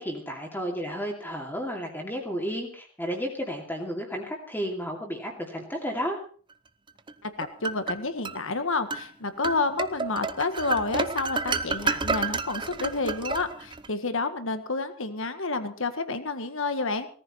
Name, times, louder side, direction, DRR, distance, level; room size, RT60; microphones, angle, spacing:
voice 1, 0.0-6.2, equal, 10° left, 0 dB, 2.6 m, -32 dB
sound 1, 7.1-8.4 8.9-9.1 9.4-13.9, right 4 dB, 20° right, 0.6 m, -30 dB
voice 2, 7.2-17.1, left 3 dB, 60° left, 9 dB, 1.7 m, -29 dB
18.0 x 14.0 x 4.4 m, 0.43 s
head